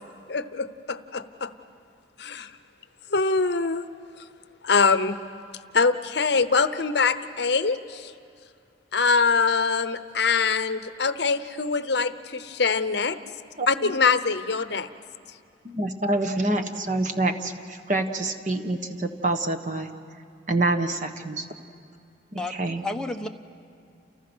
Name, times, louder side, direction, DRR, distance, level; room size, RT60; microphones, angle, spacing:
voice 1, 0.3-1.5 2.2-2.5 3.1-3.8 4.6-5.2 5.7-8.1 8.9-13.2 13.7-14.9, left 4 dB, 60° left, 12 dB, 0.8 m, -23 dB
voice 2, 13.6-13.9 15.6-19.9 20.5-21.5 22.3-22.8, right 2 dB, 40° right, 7 dB, 1.3 m, -27 dB
voice 3, 22.4-23.3, left 2 dB, 5° left, 3 dB, 1.0 m, -32 dB
29.5 x 29.5 x 6.3 m, 2.4 s
head